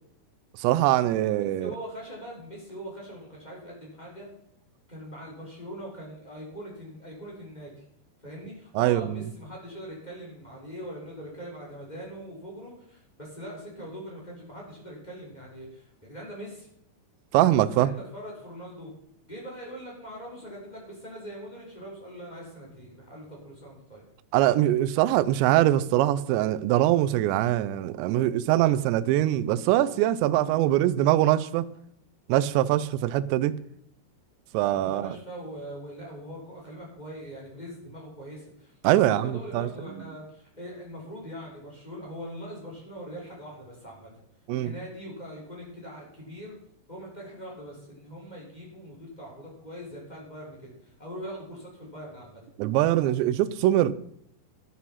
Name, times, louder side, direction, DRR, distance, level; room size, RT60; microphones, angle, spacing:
voice 1, 0.6-1.7 8.8-9.3 17.3-17.9 24.3-31.6 32.3-33.5 34.5-35.2 38.8-39.7 44.5-44.7 52.6-53.9, right 14 dB, 85° right, 2.6 m, -23 dB
voice 2, 1.3-4.3 4.9-7.8 8.2-16.7 17.7-18.9 19.3-24.0 34.7-44.1 44.6-46.5 46.9-52.4, equal, 10° left, 3.4 m, -42 dB
11.5 x 9.5 x 5.7 m
omnidirectional pair, 5.7 m